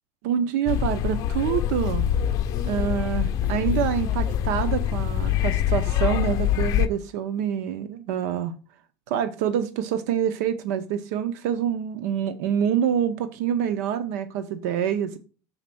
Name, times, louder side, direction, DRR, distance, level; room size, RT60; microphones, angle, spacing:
voice 1, 0.2-2.1 2.6-8.5 9.1-15.2, right 9 dB, 90° right, 0.7 m, -26 dB
sound 1, 0.7-6.9, left 11 dB, 45° left, 0.5 m, -24 dB
6.5 x 4.1 x 6.0 m
cardioid pair, 160°, 8 cm